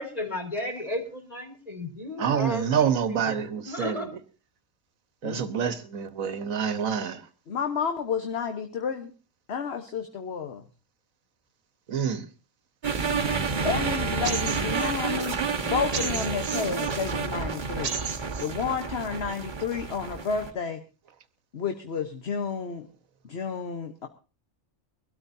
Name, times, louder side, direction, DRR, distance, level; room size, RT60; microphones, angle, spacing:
voice 1, 0.0-3.4 3.6-4.1, left 1 dB, 30° left, 4.3 m, -34 dB
voice 2, 2.2-4.1 5.2-7.3 11.9-12.3, right 7 dB, 85° right, 1.5 m, -27 dB
voice 3, 7.5-9.1 9.5-10.6 12.9-13.3 13.6-15.4 15.6-18.0 18.4-20.8 21.5-22.9 23.3-24.1, left 6 dB, 55° left, 1.3 m, -31 dB
sound 1, 12.8-20.5, right 5 dB, 40° right, 1.4 m, -30 dB
sound 2, 14.2-14.9 15.9-16.9 17.8-18.5, right 6 dB, 65° right, 1.6 m, -33 dB
23.0 x 13.0 x 2.7 m
omnidirectional pair, 1.4 m